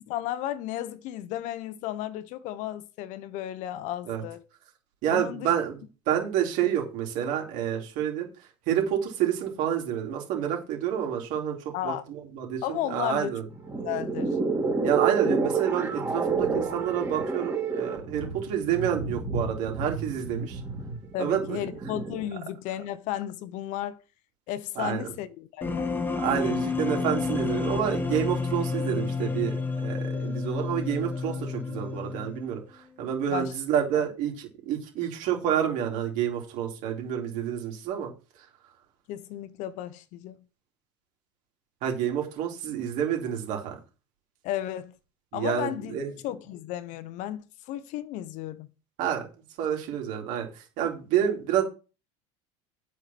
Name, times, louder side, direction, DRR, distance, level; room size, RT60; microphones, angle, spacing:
voice 1, 0.1-4.4 5.1-5.5 11.7-12.0 12.6-13.4 13.7-14.4 21.1-24.0 24.5-25.9 33.3-33.5 33.9-34.0 39.1-40.4 44.4-44.9 45.3-46.0 46.2-48.7, left 12 dB, 55° left, 1.0 m, -34 dB
voice 2, 5.0-13.5 14.8-20.6 21.2-21.7 24.8-25.1 26.2-38.1 38.4-38.5 41.8-43.7 45.3-46.1 49.0-49.3 49.6-51.6, right 9 dB, 60° right, 3.7 m, -29 dB
sound 1, 13.5-22.3, right 4 dB, 15° right, 2.6 m, -29 dB
sound 2, 25.6-32.6, left 4 dB, 15° left, 1.2 m, -30 dB
9.0 x 5.8 x 6.0 m
supercardioid pair, 135°, 15 cm